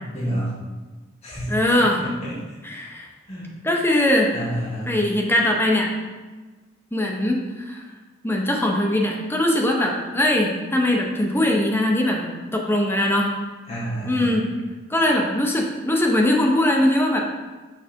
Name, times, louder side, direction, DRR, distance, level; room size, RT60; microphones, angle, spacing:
voice 1, 0.1-0.5 1.2-1.5 2.0-2.4 3.3-3.5 4.3-5.0 13.7-14.4, right 1 dB, 35° left, -9 dB, 1.7 m, -29 dB
voice 2, 1.5-2.0 2.6-3.1 3.6-4.3 4.9-5.9 6.9-7.8 8.2-13.3 14.1-14.5 14.9-17.2, left 1 dB, 10° left, 0 dB, 0.7 m, -21 dB
6.5 x 4.0 x 5.1 m, 1.2 s
head